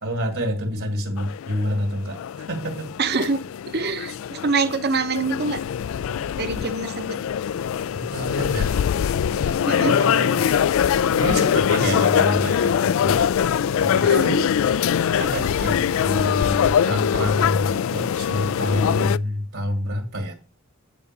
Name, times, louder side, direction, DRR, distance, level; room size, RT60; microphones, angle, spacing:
voice 1, 0.0-2.9 8.0-8.8 9.8-10.4 11.1-13.2 13.8-14.5 15.2-20.3, equal, 70° right, 1 dB, 2.2 m, -27 dB
sound 1, 1.2-19.2, left 8 dB, 65° left, 0.3 m, -22 dB
voice 2, 3.0-5.6 6.4-7.2 9.7-10.0 14.0-14.3, right 4 dB, 50° right, 10 dB, 0.9 m, -25 dB
9.6 x 3.9 x 6.6 m, 0.34 s
head